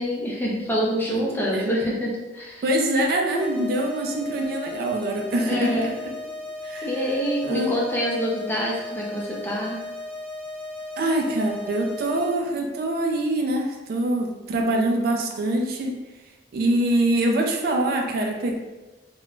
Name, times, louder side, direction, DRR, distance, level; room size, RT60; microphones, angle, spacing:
voice 1, 0.0-2.6 5.4-6.0 6.8-9.8, equal, 10° left, -4 dB, 0.5 m, -26 dB
voice 2, 2.6-6.1 6.6-6.9 7.4-7.7 11.0-16.0 16.5-18.6, right 1 dB, 55° right, 2 dB, 0.3 m, -24 dB
sound 1, 3.3-12.3, left 2 dB, 10° right, 1.3 m, -36 dB
3.7 x 2.2 x 2.3 m, 1.1 s
head